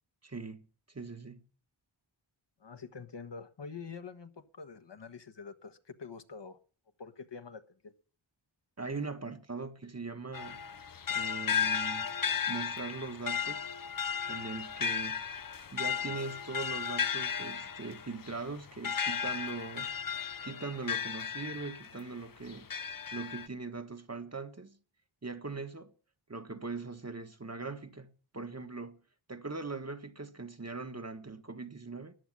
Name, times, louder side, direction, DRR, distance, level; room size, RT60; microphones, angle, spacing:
voice 1, 0.2-0.7 0.9-1.4 8.8-10.6 11.1-12.1 12.5-13.7 14.3-15.2 15.7-19.9 20.4-22.7 23.1-24.8 25.2-25.9 26.3-29.0 29.3-32.1, right 3 dB, 30° right, 1.5 m, -41 dB
voice 2, 2.6-6.6 7.0-7.9, left 5 dB, 60° left, 1.5 m, -46 dB
sound 1, 10.3-22.0 22.5-23.5, left 7 dB, 45° left, 0.8 m, -35 dB
14.0 x 10.0 x 9.7 m
wide cardioid pair, 70°, 48 cm